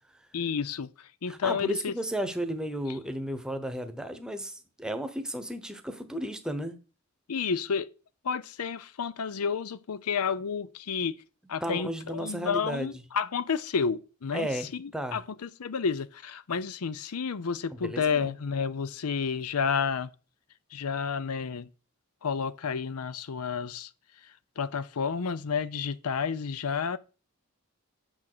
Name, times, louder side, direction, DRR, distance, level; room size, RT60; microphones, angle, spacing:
voice 1, 0.3-0.9 1.2-1.9 7.3-7.9 8.2-11.2 11.5-20.1 20.7-21.7 22.2-23.9 24.6-27.0, left 6 dB, 90° left, 0.6 m, -30 dB
voice 2, 1.3-6.8 11.6-13.0 14.3-15.2 17.7-18.3, right 1 dB, 5° right, 0.9 m, -34 dB
7.3 x 6.2 x 6.7 m
head